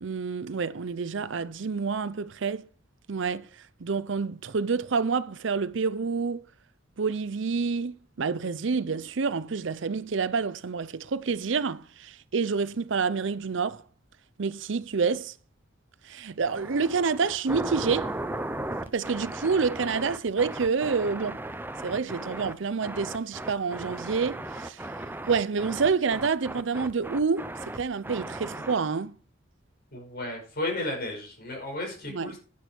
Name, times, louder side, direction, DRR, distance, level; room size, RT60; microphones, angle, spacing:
voice 1, 0.0-2.7 3.1-6.4 7.0-13.8 14.4-15.3 16.0-18.1 18.9-21.4 21.8-24.9 25.3-29.2 32.1-32.3, right 5 dB, 70° right, 0.6 m, -28 dB
sound 1, 16.4-22.5 22.8-28.8, right 1 dB, 10° right, 0.7 m, -36 dB
voice 2, 29.9-32.4, left 2 dB, 50° left, 5.2 m, -33 dB
10.5 x 8.6 x 4.5 m
head